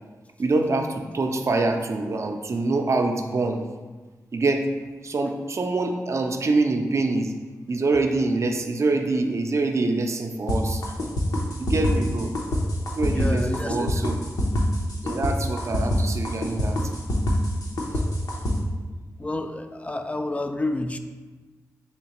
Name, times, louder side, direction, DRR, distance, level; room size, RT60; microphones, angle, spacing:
voice 1, 0.4-3.6 4.3-4.6 5.0-7.3 7.7-11.0 11.6-12.3 13.0-14.2 15.0-16.8, right 3 dB, 50° right, 4 dB, 0.5 m, -25 dB
sound 1, 10.5-18.5, left 1 dB, 80° left, 0.7 m, -25 dB
voice 2, 13.1-14.1 19.2-21.0, left 2 dB, 20° left, 7 dB, 0.3 m, -29 dB
4.4 x 3.1 x 2.9 m, 1.3 s
cardioid pair, 50°, 6 cm